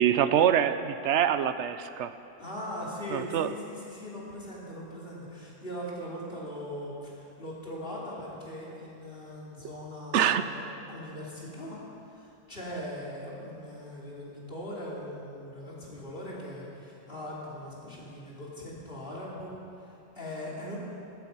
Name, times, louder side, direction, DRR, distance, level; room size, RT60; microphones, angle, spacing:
voice 1, 0.0-2.1 3.1-3.5 10.1-10.4, right 9 dB, 90° right, 12 dB, 1.0 m, -25 dB
voice 2, 2.4-11.8 12.1-20.8, equal, 55° left, -5 dB, 3.3 m, -40 dB
14.0 x 13.5 x 5.5 m, 2.8 s
omnidirectional pair, 1.1 m